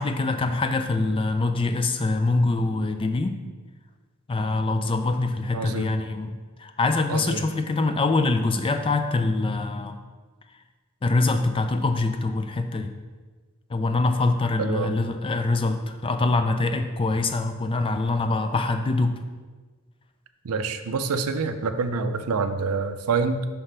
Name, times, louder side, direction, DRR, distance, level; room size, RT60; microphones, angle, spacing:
voice 1, 0.0-3.3 4.3-10.0 11.0-12.9 13.7-19.1, left 3 dB, 25° left, 8 dB, 0.4 m, -24 dB
voice 2, 5.5-5.9 7.1-7.4 14.6-14.9 20.4-23.5, right 4 dB, 80° right, 9 dB, 0.5 m, -26 dB
5.8 x 5.7 x 3.3 m, 1.4 s
head